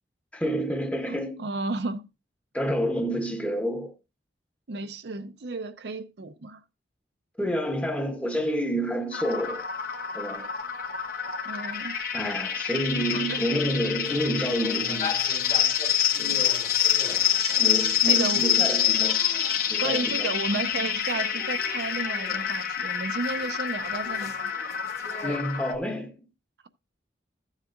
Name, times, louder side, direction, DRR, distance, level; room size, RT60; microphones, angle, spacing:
voice 1, 0.3-1.4 2.5-4.0 7.4-9.7 10.1-10.5 12.1-15.2 16.2-16.6 17.6-19.2 19.7-20.7 25.2-26.2, equal, 5° left, 0.9 m, -29 dB
voice 2, 1.4-2.1 4.7-6.6 11.4-12.0 13.1-13.4 18.1-18.4 19.8-24.5, right 3 dB, 65° right, 0.6 m, -33 dB
sound 1, 9.1-25.7, left 9 dB, 55° left, 1.1 m, -27 dB
sound 2, 14.0-20.0 20.5-25.4, left 3 dB, 40° left, 1.3 m, -41 dB
13.5 x 7.3 x 2.5 m
head